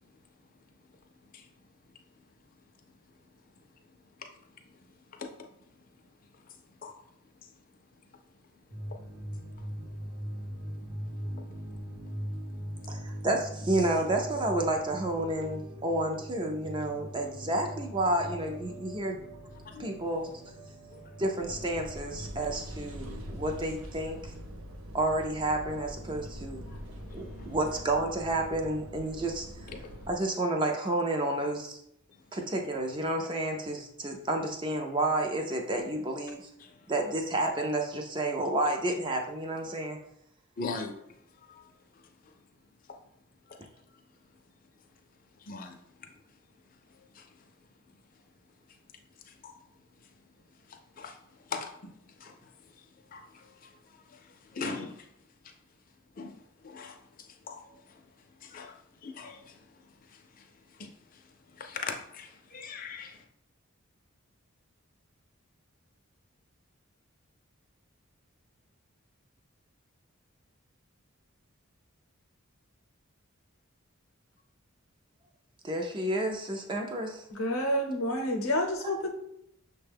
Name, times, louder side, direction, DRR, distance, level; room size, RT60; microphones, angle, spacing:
voice 1, 0.6-1.5 3.3-3.7 4.0-7.5 8.7-9.8 10.3-10.4 10.9-11.6 12.3-12.5 12.7-13.2 19.5-19.9 20.9-21.2 26.7-27.6 29.7-30.1 32.1-32.2 36.6-36.9 40.6-42.4 42.9-43.0 43.5-43.7 43.9-44.0 45.4-46.4 46.9-47.5 48.2-48.3 48.7-49.7 50.0-50.1 50.5-55.1 55.4-55.6 56.1-63.2, left 4 dB, 40° left, 0.5 m, -45 dB
sound 1, 8.7-22.7, equal, 55° right, 1.0 m, -41 dB
voice 2, 12.9-19.2 19.8-20.4 21.2-24.3 24.9-26.7 27.1-29.5 30.1-31.8 32.3-36.5 36.9-40.0 75.6-77.2, right 1 dB, 20° right, 0.4 m, -30 dB
sound 2, 21.3-30.2, equal, 80° right, 0.6 m, -43 dB
voice 3, 77.3-79.1, equal, 80° left, 0.7 m, -29 dB
6.3 x 2.2 x 3.4 m
head